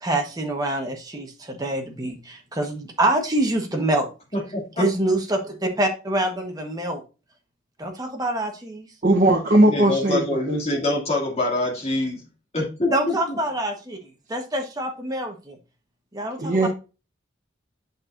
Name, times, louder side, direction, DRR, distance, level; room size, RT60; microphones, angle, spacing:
voice 1, 0.0-4.1 4.8-7.0 7.8-8.9 12.9-14.0 14.3-15.6 16.1-16.7, right 1 dB, 20° right, 1.2 m, -25 dB
voice 2, 4.3-4.9 9.7-12.2 12.5-13.4, left 2 dB, 30° left, 2.5 m, -25 dB
voice 3, 9.0-10.6 16.4-16.7, right 1 dB, 40° right, 0.9 m, -19 dB
8.5 x 6.2 x 2.5 m
head